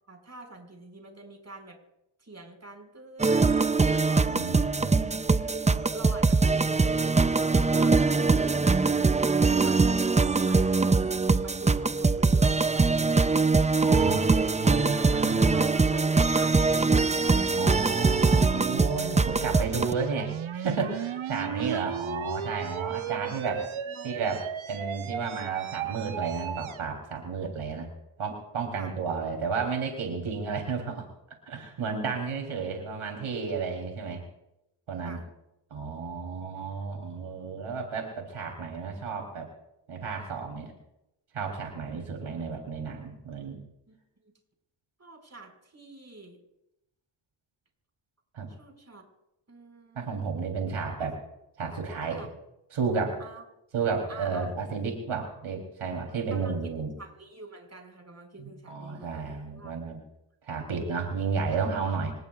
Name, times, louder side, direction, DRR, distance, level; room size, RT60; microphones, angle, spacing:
voice 1, 0.1-1.8 2.2-4.5 5.4-8.7 9.6-10.0 10.4-14.5 14.8-17.3 21.6-21.9 23.0-24.1 27.4-27.5 28.8-28.9 35.0-35.3 36.5-36.7 43.9-44.0 45.0-46.4 48.5-49.0 49.5-50.3 51.0-51.1 52.2-52.3 53.2-53.4 54.1-54.5 56.3-56.6 57.0-59.8, right 2 dB, 30° right, 3 dB, 5.4 m, -46 dB
sound 1, 3.2-19.9, right 3 dB, 15° right, 0.5 m, -23 dB
voice 2, 4.3-5.1 13.8-15.6 17.6-23.6 24.0-27.9 28.2-31.0 31.5-34.2 34.9-35.2 35.7-39.5 39.9-40.7 41.3-43.6 48.3-48.5 49.9-51.1 51.6-52.2 52.7-53.2 53.7-56.9 58.4-60.0 60.4-62.1, right 5 dB, 90° right, 2 dB, 3.5 m, -32 dB
sound 2, 19.1-26.9, right 8 dB, 70° right, 1.0 m, -35 dB
27.0 x 19.0 x 2.4 m, 0.87 s
cardioid pair, 70°, 49 cm